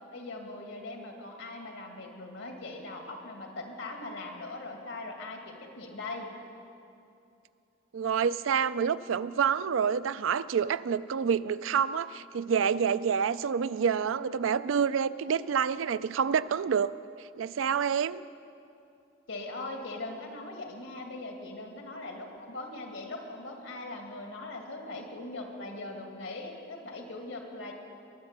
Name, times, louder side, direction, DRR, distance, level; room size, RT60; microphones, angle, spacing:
voice 1, 0.1-6.3 19.3-27.7, left 2 dB, 85° left, 2 dB, 2.2 m, -40 dB
voice 2, 7.9-16.9 17.4-18.2, right 7 dB, 85° right, 16 dB, 0.4 m, -28 dB
21.5 x 7.9 x 6.7 m, 2.7 s
head